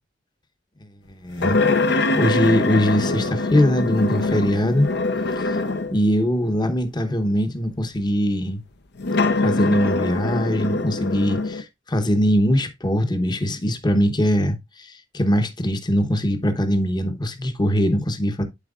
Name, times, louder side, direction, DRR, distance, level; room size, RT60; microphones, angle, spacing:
voice 1, 1.1-1.6 2.2-4.9 5.4-5.6 5.9-8.6 9.4-18.4, equal, 25° left, 0.9 m, -21 dB
sound 1, 1.4-6.1 6.8-6.9 9.0-11.6, left 3 dB, 60° left, 0.7 m, -23 dB
11.5 x 4.6 x 2.4 m
head